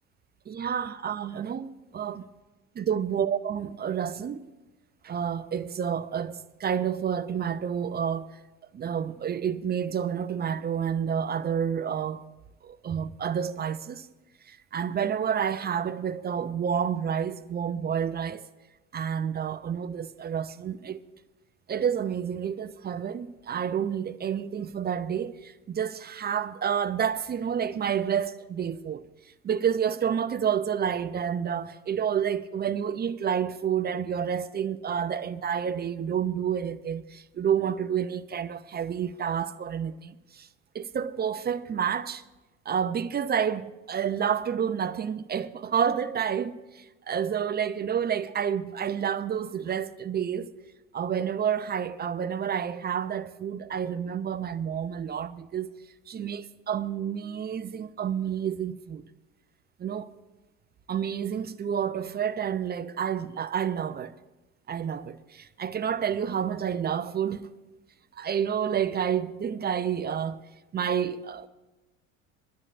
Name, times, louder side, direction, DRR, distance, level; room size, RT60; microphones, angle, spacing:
voice 1, 0.5-2.2 2.8-4.4 5.0-8.3 8.7-12.2 12.6-14.1 14.5-18.5 18.9-21.0 21.7-29.0 29.4-40.5 40.7-42.2 42.7-50.5 50.9-55.7 56.1-59.0 59.8-60.1 60.9-64.1 64.7-67.5 68.2-70.4 70.7-71.5, right 8 dB, 25° right, 0.5 m, -29 dB
22.0 x 12.5 x 2.5 m
hypercardioid pair, 70°, 38 cm